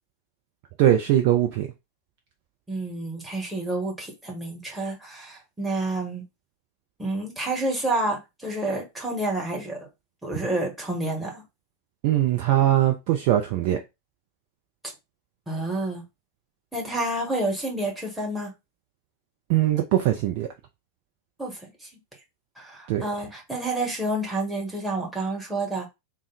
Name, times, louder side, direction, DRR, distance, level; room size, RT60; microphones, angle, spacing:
voice 1, 0.8-1.7 12.0-13.8 19.5-20.5 22.9-23.0, right 12 dB, 45° right, 0.5 m, -21 dB
voice 2, 2.7-6.2 7.0-9.9 10.2-11.4 15.5-16.0 16.7-18.5 21.4-21.9 22.6-25.9, right 2 dB, 5° right, 1.5 m, -29 dB
3.6 x 2.3 x 4.0 m
figure-of-eight pair, 90°, 0 cm